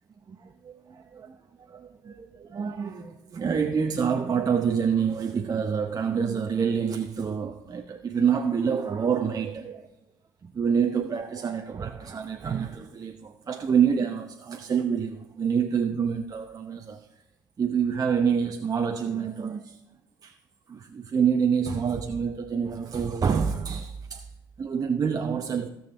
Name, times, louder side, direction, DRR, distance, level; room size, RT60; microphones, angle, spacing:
voice 1, 0.3-9.9 10.4-17.1 17.6-19.8 20.2-20.4 20.7-24.2 24.6-25.7, right 7 dB, 40° right, 0.8 m, -27 dB
16.0 x 7.2 x 3.4 m
hypercardioid pair, 50°, 10 cm